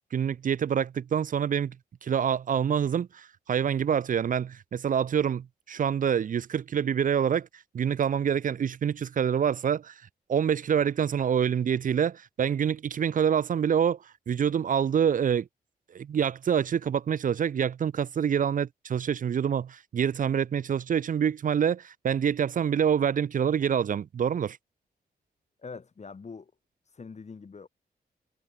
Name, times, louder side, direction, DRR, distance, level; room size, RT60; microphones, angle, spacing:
voice 1, 0.1-1.8 2.0-10.0 10.3-15.5 15.9-24.6, right 8 dB, 50° right, 0.5 m, -26 dB
voice 2, 25.6-26.5 26.9-27.7, left 5 dB, 40° left, 2.5 m, -43 dB
wide cardioid pair, 110°, 17 cm